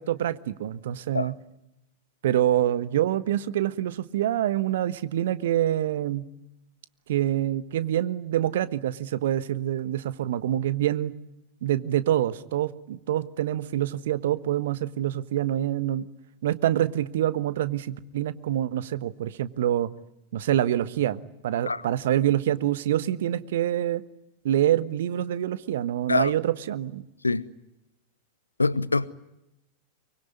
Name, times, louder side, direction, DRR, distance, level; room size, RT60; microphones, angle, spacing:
voice 1, 0.1-1.3 2.2-6.3 7.1-11.1 11.6-16.1 16.4-19.9 20.3-24.0 24.4-27.0, right 12 dB, 60° right, 1.3 m, -26 dB
voice 2, 28.6-29.1, left 3 dB, 80° left, 1.0 m, -24 dB
24.0 x 24.0 x 9.6 m
figure-of-eight pair, 90°, 0 cm